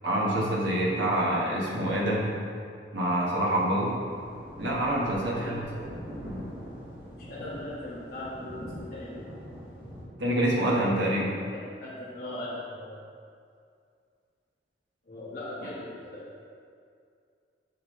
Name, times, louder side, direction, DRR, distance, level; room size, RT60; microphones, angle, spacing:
voice 1, 0.0-2.4 2.9-4.0 4.6-5.6 10.2-11.3, right 1 dB, 80° right, -4 dB, 1.4 m, -26 dB
sound 1, 4.1-10.0, equal, 15° right, 1.5 m, -42 dB
voice 2, 5.3-5.7 7.1-9.2 11.5-13.0 15.0-16.4, left 1 dB, 50° left, -9 dB, 1.2 m, -39 dB
7.0 x 6.0 x 3.2 m, 2.3 s
head